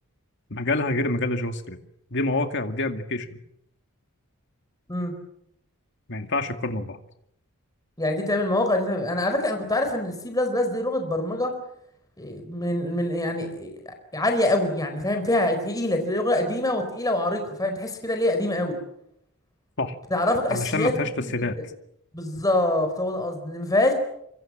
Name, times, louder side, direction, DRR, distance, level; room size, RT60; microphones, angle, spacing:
voice 1, 0.5-1.8 2.1-3.4 6.1-7.0 19.8-20.0 20.5-21.6, left 2 dB, 55° left, 6 dB, 2.2 m, -27 dB
voice 2, 8.0-11.5 12.2-18.8 20.1-20.9 21.2-21.5 22.1-23.9, left 1 dB, 15° left, 5 dB, 4.5 m, -25 dB
26.0 x 26.0 x 7.5 m, 0.75 s
head